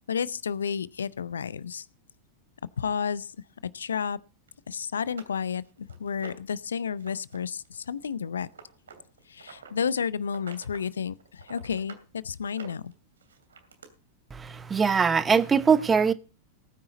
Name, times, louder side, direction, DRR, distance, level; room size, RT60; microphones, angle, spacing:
voice 1, 0.1-1.8 2.8-3.3 3.6-4.2 4.7-8.5 9.3-12.9, left 7 dB, 70° left, 0.6 m, -31 dB
sound 1, 4.5-4.6 5.0-6.6 7.0-7.4 7.6-9.7 10.2-10.9 11.2-12.1 12.5-13.9 14.8-14.9 15.4-15.5, right 6 dB, 70° right, 2.6 m, -48 dB
voice 2, 14.3-16.1, right 6 dB, 15° right, 1.0 m, -22 dB
19.0 x 9.6 x 3.9 m
figure-of-eight pair, 90°, 0 cm